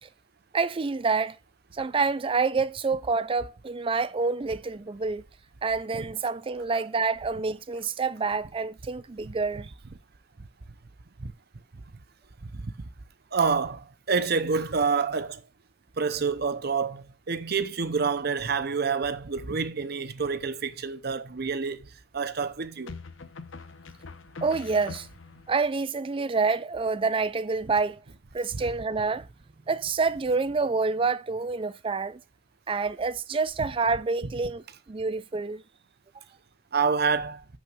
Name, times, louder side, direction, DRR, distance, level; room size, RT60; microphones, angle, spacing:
voice 1, 0.5-1.4 1.7-5.2 5.6-9.7 24.4-25.1 25.5-28.0 28.3-29.3 29.7-32.2 32.7-35.6, right 4 dB, 25° right, 0.4 m, -27 dB
voice 2, 12.4-12.9 13.3-15.4 16.0-23.0 36.7-37.4, right 5 dB, 55° right, 0.8 m, -28 dB
sound 1, 20.2-20.8 22.9-25.5, left 4 dB, 70° left, 0.8 m, -44 dB
6.3 x 6.1 x 6.1 m
head